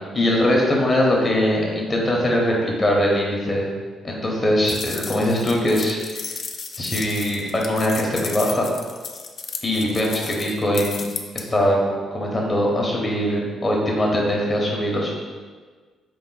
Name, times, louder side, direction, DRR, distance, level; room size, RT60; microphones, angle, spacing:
voice 1, 0.1-3.7 4.0-6.0 6.8-8.7 9.6-11.1 11.3-11.8 12.1-15.1, left 1 dB, 30° left, -2 dB, 0.9 m, -21 dB
sound 1, 4.7-11.4, left 5 dB, 50° left, 0.3 m, -34 dB
4.7 x 2.1 x 3.9 m, 1.5 s
cardioid pair, 90°, 0 cm